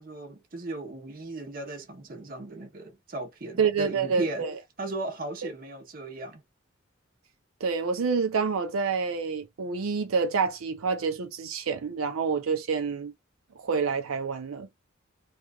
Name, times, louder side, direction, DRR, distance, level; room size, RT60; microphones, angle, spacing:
voice 1, 0.0-6.4, right 2 dB, 40° right, 0.9 m, -37 dB
voice 2, 3.6-4.5 7.6-13.1 13.6-14.7, right 5 dB, 80° right, 0.5 m, -28 dB
2.9 x 2.3 x 2.3 m
head